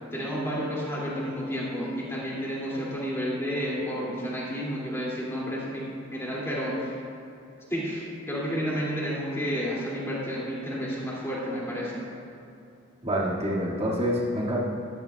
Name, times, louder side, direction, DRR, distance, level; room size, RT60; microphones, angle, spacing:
voice 1, 0.1-5.8 6.1-6.9 7.7-12.0, equal, 15° left, -6 dB, 2.5 m, -31 dB
voice 2, 13.0-14.6, equal, 30° right, -6 dB, 2.1 m, -27 dB
13.5 x 12.0 x 2.4 m, 2.6 s
head